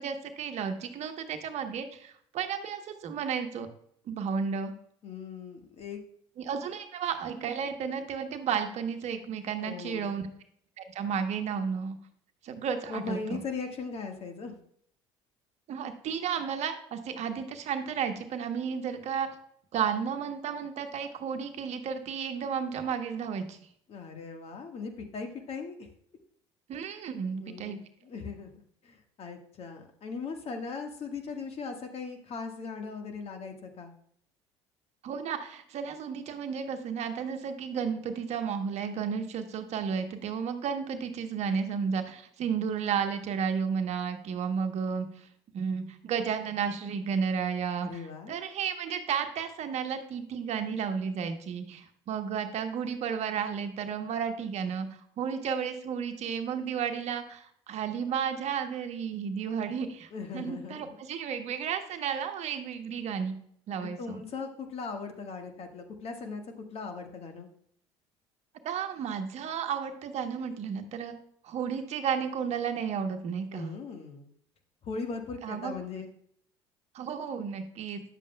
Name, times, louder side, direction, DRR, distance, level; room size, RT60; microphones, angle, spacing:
voice 1, 0.0-3.7 4.1-4.7 6.4-10.2 10.8-12.0 12.4-13.4 15.7-19.3 19.7-23.6 26.7-27.8 35.0-45.3 45.5-48.0 48.3-54.9 55.2-63.3 63.7-64.2 68.6-71.1 71.4-73.7 75.4-75.7 76.9-78.0, right 7 dB, 55° right, 6 dB, 1.1 m, -33 dB
voice 2, 5.0-6.0 9.6-10.1 12.9-14.6 23.9-25.9 27.4-27.8 28.0-28.5 28.8-33.9 47.8-48.4 60.1-60.9 63.8-67.5 73.5-74.3 74.8-76.1, left 4 dB, 50° left, 4 dB, 1.6 m, -39 dB
10.0 x 7.4 x 2.3 m, 0.66 s
hypercardioid pair, 65°, 14 cm